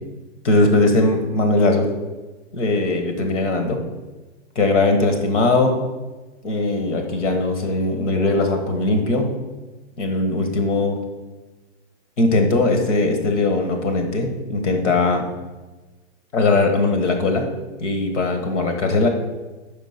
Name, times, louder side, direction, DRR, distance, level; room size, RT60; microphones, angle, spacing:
voice 1, 0.4-1.9 2.5-3.8 4.5-5.7 6.4-9.3 10.0-11.0 12.2-15.3 16.3-17.4 17.8-19.1, left 2 dB, 90° left, 5 dB, 1.5 m, -19 dB
5.2 x 4.6 x 5.7 m, 1.2 s
hypercardioid pair, 145°, 35 cm